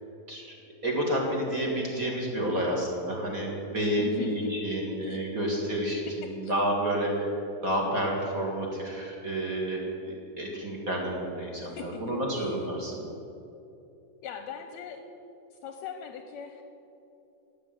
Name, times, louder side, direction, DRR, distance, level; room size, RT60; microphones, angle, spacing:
voice 1, 0.8-7.4 7.6-13.1, right 1 dB, 35° right, -1 dB, 1.7 m, -30 dB
voice 2, 4.0-4.6 5.0-5.2 6.1-6.5 11.6-12.0 12.3-12.6 14.2-15.0 15.5-16.6, left 7 dB, 75° left, 6 dB, 1.8 m, -40 dB
12.0 x 7.2 x 9.7 m, 2.8 s
omnidirectional pair, 3.5 m